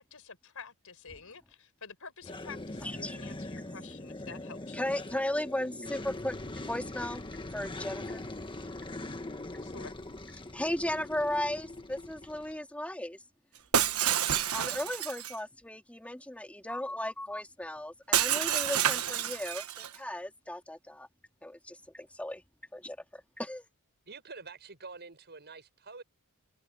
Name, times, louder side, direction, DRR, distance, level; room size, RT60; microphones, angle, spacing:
voice 1, 0.0-4.9 9.6-9.9, left 5 dB, 70° left, 5.2 m, -49 dB
sound 1, 2.2-12.6, left 2 dB, 20° left, 1.5 m, -41 dB
voice 2, 2.8-3.2 4.7-6.4 6.6-7.2 7.5-8.2 9.5-9.6 10.4-13.2 14.5-21.1 21.4-22.4 22.7-23.7, left 1 dB, 5° left, 3.2 m, -36 dB
Shatter, 13.7-15.4 18.1-20.0, right 10 dB, 70° right, 1.3 m, -29 dB
voice 3, 24.1-26.0, right 4 dB, 50° right, 6.3 m, -47 dB
head